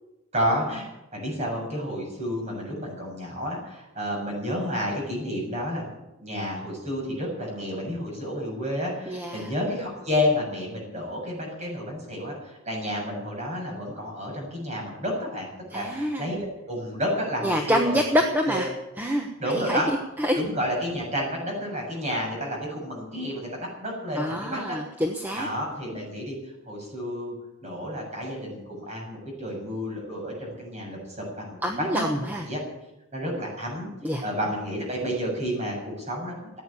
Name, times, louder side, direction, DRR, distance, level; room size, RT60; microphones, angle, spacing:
voice 1, 0.3-5.8 6.2-18.2 18.5-18.7 19.4-19.9 20.3-24.8 25.4-26.4 26.7-27.3 27.6-32.6 33.1-33.9 34.2-36.6, equal, 35° right, -1 dB, 7.1 m, -30 dB
voice 2, 9.1-9.5 15.7-16.3 17.4-18.7 19.0-19.3 19.5-19.8 20.2-20.4 24.2-25.5 31.6-32.4 34.0-34.2, equal, 10° right, 2 dB, 1.1 m, -26 dB
16.5 x 9.3 x 8.5 m, 0.94 s
head